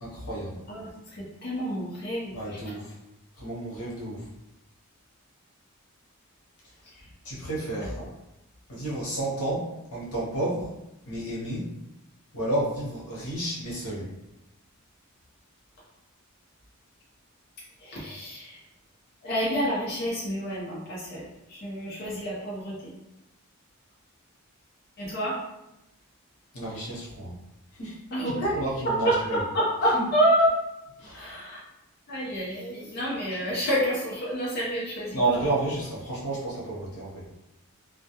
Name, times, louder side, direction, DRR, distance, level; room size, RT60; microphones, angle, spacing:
voice 1, 0.0-0.5 2.3-2.9 3.4-4.3 7.2-8.0 8.7-10.7 11.1-11.7 12.3-14.1 26.5-27.3 27.7-29.4 29.8-30.1 31.0-31.3 35.1-37.2, right 2 dB, 85° left, -6 dB, 0.9 m, -31 dB
voice 2, 0.7-2.3 17.8-18.5 19.2-21.2 21.5-22.9 25.0-25.4 28.1-28.5 28.8-30.5 31.1-31.6 32.1-35.4, equal, 45° left, -6 dB, 0.6 m, -28 dB
2.2 x 2.2 x 2.8 m, 0.92 s
head